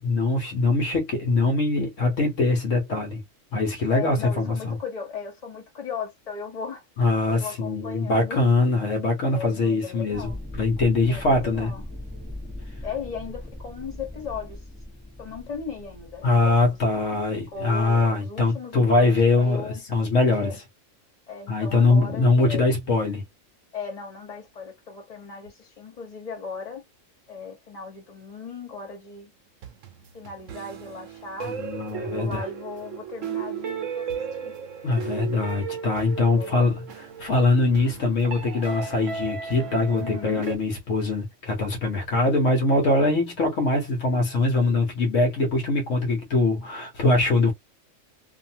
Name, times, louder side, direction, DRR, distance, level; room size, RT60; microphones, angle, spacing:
voice 1, 0.0-3.2 3.5-4.8 7.0-11.7 16.2-20.5 21.5-23.2 31.4-32.5 34.8-47.5, left 2 dB, 70° left, 1.3 m, -22 dB
voice 2, 3.9-6.8 7.3-8.4 9.3-10.4 11.1-11.8 12.8-14.6 15.2-19.1 19.4-19.8 20.3-20.6 21.3-22.7 23.7-26.8 27.3-29.3 30.1-31.6 32.0-34.1 34.4-34.5 36.3-36.7 39.9-40.5, left 5 dB, 30° left, 1.3 m, -37 dB
sound 1, 10.1-17.9, left 1 dB, 5° right, 1.1 m, -40 dB
sound 2, 29.6-40.6, right 7 dB, 75° right, 1.0 m, -35 dB
2.6 x 2.6 x 2.7 m
omnidirectional pair, 1.4 m